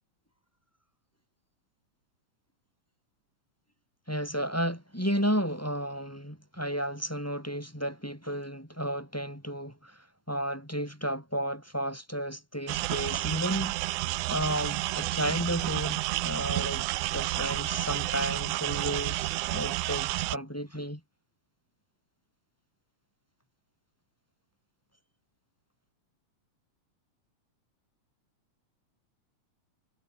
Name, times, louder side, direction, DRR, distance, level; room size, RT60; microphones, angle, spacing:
voice 1, 4.1-13.9 14.3-16.8 17.1-21.0, equal, 5° left, 5.7 m, -33 dB
sound 1, 12.7-20.4, right 19 dB, 85° right, 2.0 m, -31 dB
omnidirectional pair, 3.5 m